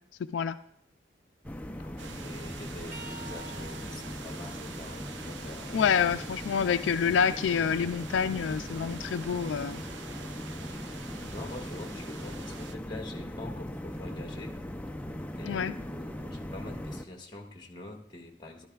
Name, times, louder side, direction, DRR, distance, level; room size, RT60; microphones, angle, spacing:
sound 1, 1.4-17.1, left 1 dB, 10° left, 0.5 m, -40 dB
voice 1, 1.8-5.9 11.3-14.6 15.3-18.7, left 2 dB, 25° left, 1 dB, 1.5 m, -45 dB
sound 2, 2.0-12.8, right 5 dB, 85° right, 0.7 m, -46 dB
sound 3, 2.9-6.7 7.2-9.2 12.1-12.3 13.5-13.7 15.0-15.1, right 2 dB, 40° right, 1.2 m, -52 dB
voice 2, 5.7-9.8 15.4-15.7, left 7 dB, 85° left, 11 dB, 0.3 m, -27 dB
13.5 x 12.0 x 2.3 m, 0.70 s
head